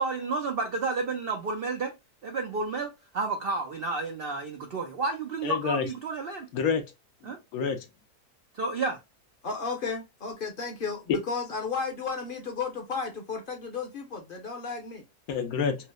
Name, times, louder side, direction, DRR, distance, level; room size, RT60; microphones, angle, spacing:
voice 1, 0.0-1.9 2.2-6.5 7.3-7.4 8.5-9.0, right 3 dB, 70° right, 0.5 m, -31 dB
voice 2, 5.4-5.9 6.5-6.9 7.2-7.9 11.1-11.2 15.3-15.8, left 6 dB, 70° left, 1.0 m, -28 dB
voice 3, 9.4-15.0, left 5 dB, 45° left, 0.7 m, -33 dB
4.4 x 2.0 x 2.2 m
omnidirectional pair, 1.8 m